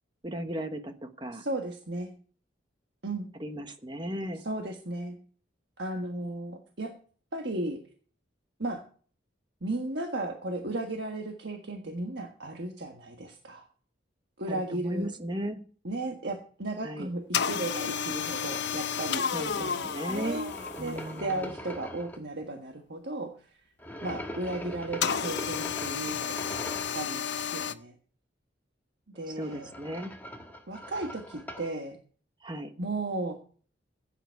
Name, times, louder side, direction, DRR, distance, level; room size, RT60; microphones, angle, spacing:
voice 1, 0.2-1.4 3.4-4.4 14.5-15.6 16.8-17.1 19.3-20.4 20.8-21.4 29.3-30.1 32.4-32.7, right 1 dB, 25° right, 7 dB, 1.2 m, -36 dB
voice 2, 1.3-2.1 3.0-3.3 4.3-5.2 5.8-6.9 7.3-7.8 8.6-8.8 9.6-13.6 14.4-15.1 15.8-19.3 19.6-20.5 20.8-23.3 24.0-26.5 26.9-27.9 29.1-29.7 30.7-32.0 32.8-33.3, right 2 dB, 65° right, 3 dB, 1.5 m, -35 dB
sound 1, 17.3-21.3 25.0-27.7, left 7 dB, 65° left, 0.7 m, -32 dB
sound 2, 17.6-22.2 23.8-27.0 29.1-31.7, equal, 10° left, 1.4 m, -43 dB
15.5 x 9.0 x 4.7 m, 0.43 s
head